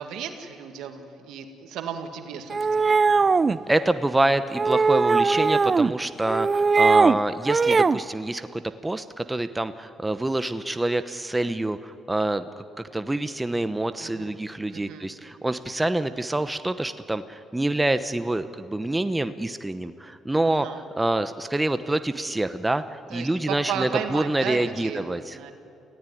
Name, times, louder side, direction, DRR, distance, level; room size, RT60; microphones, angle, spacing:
voice 1, 0.0-3.0 14.0-14.3 14.7-15.1 20.5-20.8 23.1-25.5, right 8 dB, 85° right, 6 dB, 2.1 m, -34 dB
sound 1, 2.5-3.6 4.6-5.9 6.3-7.2 7.5-8.0, right 4 dB, 35° right, 0.5 m, -20 dB
voice 2, 3.7-12.6 12.9-20.7 21.0-25.5, right 2 dB, 15° right, 11 dB, 0.9 m, -26 dB
28.0 x 16.5 x 9.4 m, 2.7 s
cardioid pair, 75°, 0 cm